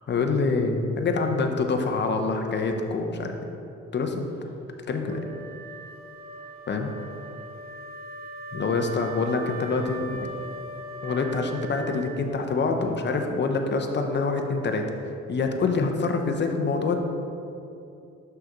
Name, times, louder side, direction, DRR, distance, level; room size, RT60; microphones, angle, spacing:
voice 1, 0.1-3.4 3.9-4.3 4.9-5.2 6.7-6.9 8.5-10.3 11.0-14.9 15.3-17.0, left 4 dB, 35° left, 4 dB, 0.7 m, -26 dB
Wind instrument woodwind instrument, 5.0-12.6, right 2 dB, 30° right, 0.9 m, -40 dB
6.2 x 5.9 x 3.8 m, 2.7 s
cardioid pair, 90°, 30 cm